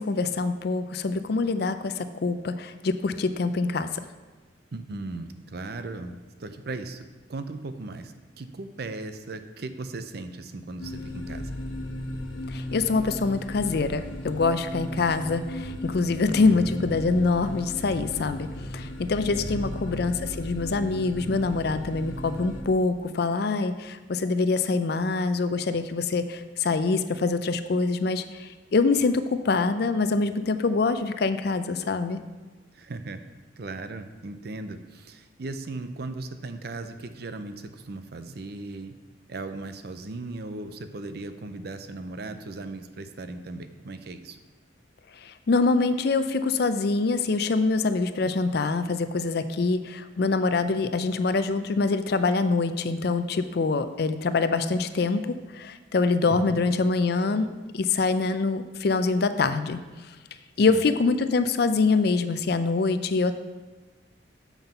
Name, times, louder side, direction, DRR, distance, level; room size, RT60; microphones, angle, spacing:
voice 1, 0.0-3.9 12.5-18.5 18.7-32.2 45.2-57.5 57.7-59.8 60.6-63.3, left 3 dB, 55° left, 11 dB, 0.4 m, -25 dB
voice 2, 4.7-6.1 6.4-11.5 19.3-19.7 32.7-33.2 33.6-39.0 39.3-44.4 56.3-56.6 60.7-60.8, right 2 dB, 55° right, 9 dB, 0.5 m, -37 dB
sound 1, 10.8-22.6, left 1 dB, 90° left, 1.0 m, -36 dB
7.1 x 5.8 x 5.5 m, 1.3 s
head